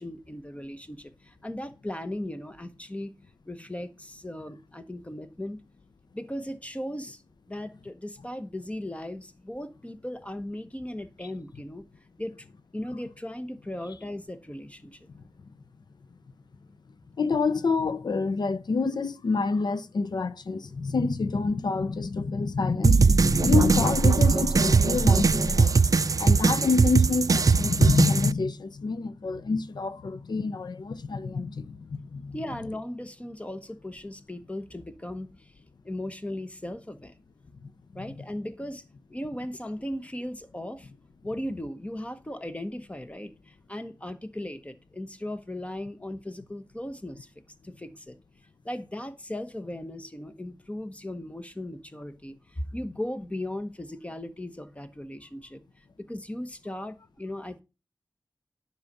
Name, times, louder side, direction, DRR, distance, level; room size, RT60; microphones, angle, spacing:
voice 1, 0.0-3.1 3.5-5.6 6.1-7.2 7.5-11.8 12.2-12.3 12.7-15.1 32.3-35.5 35.8-37.1 37.9-38.8 39.1-40.9 41.2-47.3 47.6-48.2 48.6-57.6, left 1 dB, 20° left, 1.2 m, -37 dB
voice 2, 17.2-25.9 26.2-32.4, left 4 dB, 85° left, 0.6 m, -27 dB
sound 1, 22.8-28.3, right 4 dB, 55° right, 0.4 m, -21 dB
10.5 x 5.8 x 5.3 m
wide cardioid pair, 60°, 7 cm